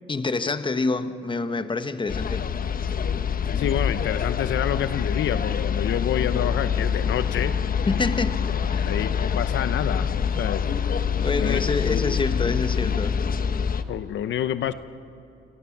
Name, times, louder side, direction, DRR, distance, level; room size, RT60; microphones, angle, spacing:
voice 1, 0.1-2.5 7.9-9.0 11.2-13.2, left 3 dB, 25° left, 10 dB, 1.2 m, -27 dB
sound 1, 2.1-13.8, left 7 dB, 45° left, 1.2 m, -25 dB
voice 2, 3.6-7.5 8.9-10.6 11.4-11.6 13.9-14.7, left 10 dB, 70° left, 12 dB, 0.9 m, -28 dB
29.0 x 25.0 x 7.3 m, 2.6 s
cardioid pair, 90°, 20 cm